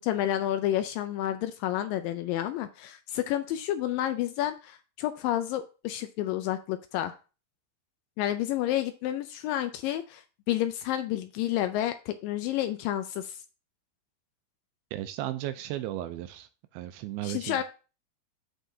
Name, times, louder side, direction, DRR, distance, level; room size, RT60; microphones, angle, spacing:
voice 1, 0.0-7.1 8.2-13.4 17.2-17.6, left 12 dB, 85° left, 2.0 m, -30 dB
voice 2, 14.9-17.6, right 13 dB, 80° right, 2.3 m, -35 dB
13.0 x 4.6 x 2.7 m
omnidirectional pair, 4.5 m